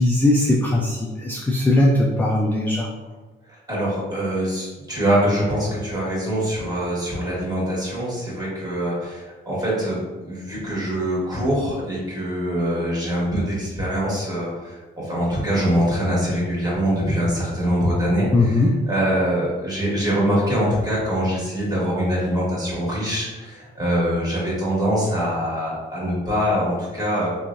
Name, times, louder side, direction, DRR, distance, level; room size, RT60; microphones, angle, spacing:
voice 1, 0.0-2.9 18.3-18.7, left 2 dB, 10° left, -2 dB, 0.3 m, -19 dB
voice 2, 3.5-27.3, equal, 20° right, -7 dB, 1.4 m, -23 dB
2.9 x 2.2 x 2.5 m, 1.3 s
cardioid pair, 90°, 20 cm